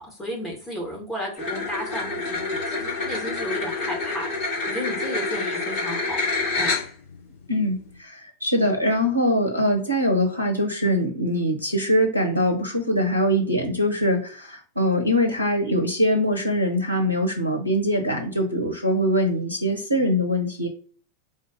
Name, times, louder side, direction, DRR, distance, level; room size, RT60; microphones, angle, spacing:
voice 1, 0.0-6.2 6.5-6.7, equal, 15° left, -2 dB, 1.5 m, -33 dB
sound 1, 1.4-7.1, left 3 dB, 35° left, 2.1 m, -27 dB
voice 2, 7.5-20.7, equal, 85° right, 4 dB, 0.7 m, -23 dB
4.1 x 2.5 x 3.8 m, 0.43 s
figure-of-eight pair, 90°, 0 cm